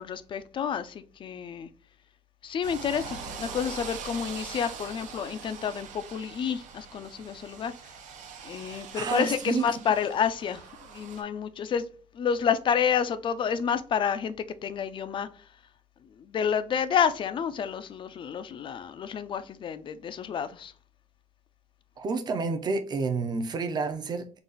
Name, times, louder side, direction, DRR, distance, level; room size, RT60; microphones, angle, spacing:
voice 1, 0.0-1.7 2.4-7.7 8.4-10.6 10.9-11.9 12.1-14.3 14.6-15.3 16.2-20.7, left 7 dB, 40° left, 0.4 m, -29 dB
sound 1, 2.6-11.2, right 6 dB, 75° right, 0.7 m, -42 dB
voice 2, 8.7-9.6 22.0-24.4, right 4 dB, 35° right, 0.5 m, -30 dB
3.9 x 2.4 x 3.8 m
cardioid pair, 150°, 13 cm